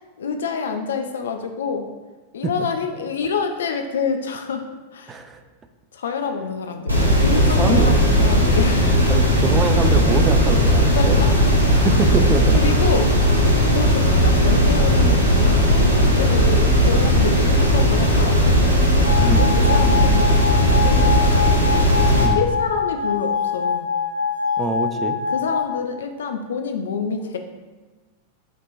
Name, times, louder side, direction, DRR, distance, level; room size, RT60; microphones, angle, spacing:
voice 1, 0.2-1.9 2.3-4.7 4.9-5.2 5.9-9.1 10.9-11.3 12.6-13.2 13.7-18.8 19.2-20.4 20.7-21.5 22.0-23.9 25.3-27.4, left 5 dB, 65° left, 5 dB, 0.3 m, -27 dB
voice 2, 5.1-5.4 7.3-8.0 9.1-11.2 11.8-12.6 19.3-19.5 22.2-22.4 24.6-25.2, right 4 dB, 20° right, 7 dB, 0.4 m, -24 dB
sound 1, 6.9-22.3, equal, 85° right, 0.7 m, -17 dB
sound 2, 19.0-25.6, left 6 dB, 90° left, 0.9 m, -24 dB
5.8 x 2.9 x 2.5 m, 1.2 s
figure-of-eight pair, 90°, 0 cm